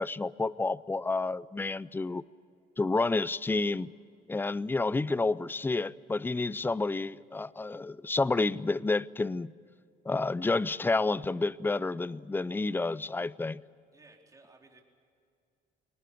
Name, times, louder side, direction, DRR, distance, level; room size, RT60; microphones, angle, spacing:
voice 1, 0.0-2.2 2.8-3.9 4.3-9.5 10.1-13.6, left 3 dB, 10° left, 20 dB, 0.5 m, -30 dB
voice 2, 13.9-14.8, right 3 dB, 20° right, 1 dB, 4.2 m, -57 dB
23.5 x 19.5 x 8.4 m, 2.3 s
cardioid pair, 110°, 17 cm